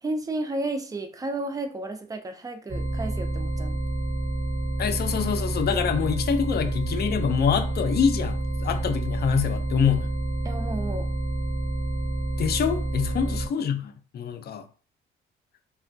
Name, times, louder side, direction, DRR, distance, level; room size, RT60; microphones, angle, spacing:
voice 1, 0.0-3.8 10.4-11.1 13.2-13.4, right 2 dB, 15° right, 0.5 m, -32 dB
sound 1, 2.7-13.5, right 1 dB, 35° right, 1.2 m, -28 dB
voice 2, 4.8-10.1 12.4-14.6, left 7 dB, 55° left, 0.5 m, -25 dB
3.3 x 2.2 x 2.6 m
cardioid pair, 90°, 20 cm